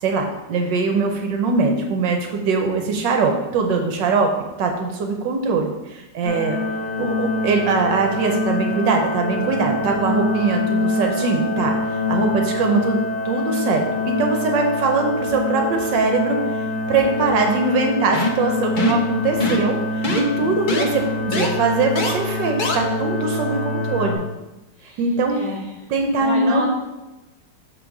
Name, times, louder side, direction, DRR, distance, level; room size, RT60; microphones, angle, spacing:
voice 1, 0.0-4.3 4.6-6.6 7.0-13.0 13.2-24.2 25.0-25.4 25.9-26.7, right 4 dB, 75° right, 3 dB, 1.4 m, -21 dB
sound 1, 6.2-24.2, left 2 dB, 45° left, 2.2 m, -25 dB
voice 2, 6.3-6.7 20.3-20.6 24.1-24.3 24.8-25.8 26.2-26.7, right 1 dB, 5° left, -10 dB, 2.3 m, -32 dB
sound 2, 18.1-18.4 18.8-19.0 19.4-19.7 20.0-20.2 20.7-20.8 21.3-21.5 22.0-22.1 22.6-22.8, left 3 dB, 75° left, 0.4 m, -22 dB
6.3 x 3.9 x 5.8 m, 1.0 s
omnidirectional pair, 2.0 m